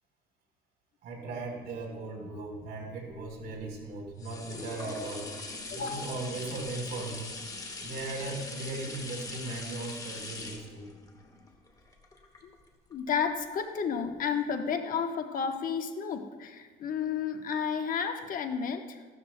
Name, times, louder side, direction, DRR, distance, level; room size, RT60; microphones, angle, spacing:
voice 1, 1.0-5.3 5.7-7.3 7.8-10.9, right 2 dB, 70° right, -2 dB, 4.1 m, -38 dB
sound 1, 3.2-12.9 13.4-13.5, left 3 dB, 20° left, 1.3 m, -42 dB
voice 2, 5.7-6.1 12.9-19.0, left 6 dB, 55° left, 6 dB, 1.0 m, -32 dB
16.0 x 12.5 x 2.2 m, 1.4 s
cardioid pair, 110°, 17 cm